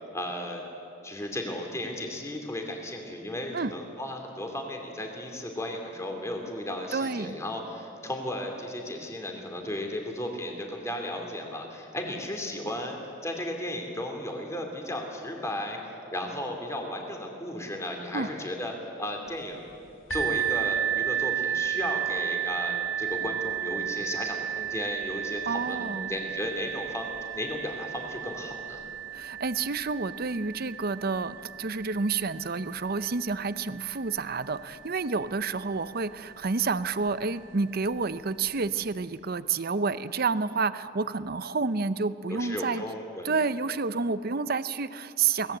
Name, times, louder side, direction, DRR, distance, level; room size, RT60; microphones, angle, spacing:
voice 1, 0.1-0.6 1.0-15.8 16.1-18.7 19.0-19.7 20.1-28.8 42.3-43.3, left 1 dB, 15° left, 2 dB, 2.6 m, -35 dB
voice 2, 6.9-7.4 18.1-18.3 25.4-26.1 29.1-42.8 43.2-45.6, right 4 dB, 50° right, 14 dB, 0.7 m, -29 dB
sound 1, 20.1-35.6 36.4-36.5 37.1-37.2, right 10 dB, 75° left, 2.5 m, -33 dB
24.0 x 18.5 x 8.0 m, 2.7 s
head